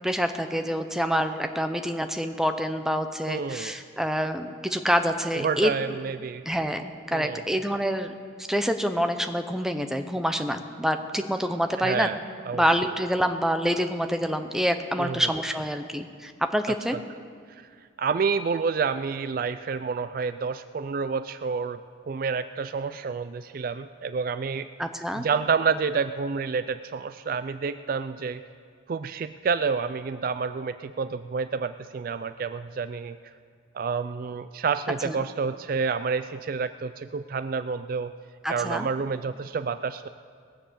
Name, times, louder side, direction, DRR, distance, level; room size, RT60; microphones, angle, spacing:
voice 1, 0.0-5.7 6.5-12.1 12.5-17.0 24.8-25.2 35.0-35.1 38.4-38.9, equal, ahead, 7 dB, 0.6 m, -27 dB
voice 2, 3.3-3.7 5.3-6.4 7.1-7.4 11.8-12.2 12.5-12.6 15.0-15.3 17.5-17.6 18.0-21.8 22.1-24.7 25.1-28.4 28.9-33.2 33.7-38.1 38.5-40.1, right 5 dB, 45° right, 12 dB, 0.3 m, -29 dB
20.0 x 7.7 x 6.8 m, 2.1 s
head